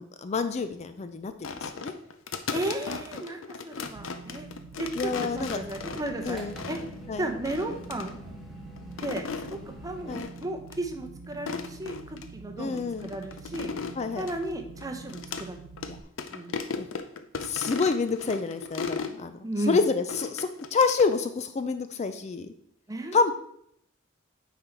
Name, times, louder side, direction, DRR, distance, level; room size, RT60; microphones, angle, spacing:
voice 1, 0.0-1.9 4.9-5.6 6.2-6.6 7.1-7.3 10.1-10.3 12.6-13.1 14.0-14.3 15.9-16.0 16.7-16.9 17.4-19.4 19.7-22.5 23.1-23.3, left 4 dB, 35° left, 10 dB, 0.4 m, -28 dB
sound 1, 1.4-7.0 7.4-8.1 8.8-9.6 10.1-10.4 10.7-10.8 11.3-12.3 12.8-15.5 15.8-15.9 16.2-19.2 20.1-21.1, left 5 dB, 75° left, 0.6 m, -36 dB
voice 2, 2.5-4.5 4.8-6.4 6.7-6.8 7.2-8.2 9.0-9.2 9.7-13.7 14.2-15.6 16.3-16.8 19.4-19.8 22.9-23.1, right 1 dB, 20° right, 4 dB, 0.8 m, -34 dB
sound 2, 4.0-16.0, right 4 dB, 80° right, 0.4 m, -46 dB
sound 3, 5.1-10.2, equal, ahead, 1.6 m, -46 dB
9.1 x 4.1 x 4.4 m, 0.72 s
head